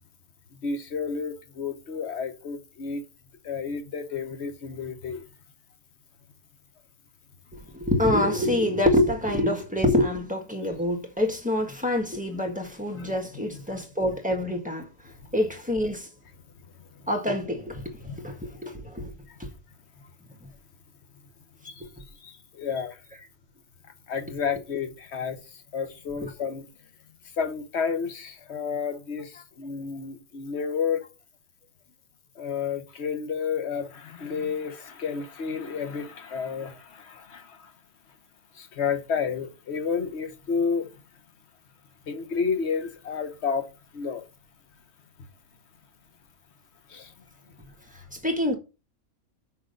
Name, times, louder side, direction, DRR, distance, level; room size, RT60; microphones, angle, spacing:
voice 1, 0.6-3.0 3.4-5.2 12.9-13.1 13.5-13.6 15.0-15.1 18.0-18.2 19.3-19.4 20.0-20.1 21.6-21.9 22.2-23.0 24.1-26.7 27.4-31.1 32.3-37.7 38.5-40.9 42.1-43.7 43.9-44.3 46.9-47.1, left 6 dB, 50° left, 1.3 m, -31 dB
voice 2, 7.5-14.9 15.3-16.1 17.1-19.1 19.4-19.5 21.8-21.9 26.2-26.3 48.1-48.6, left 1 dB, 5° right, 1.5 m, -26 dB
6.4 x 6.0 x 5.2 m
omnidirectional pair, 1.5 m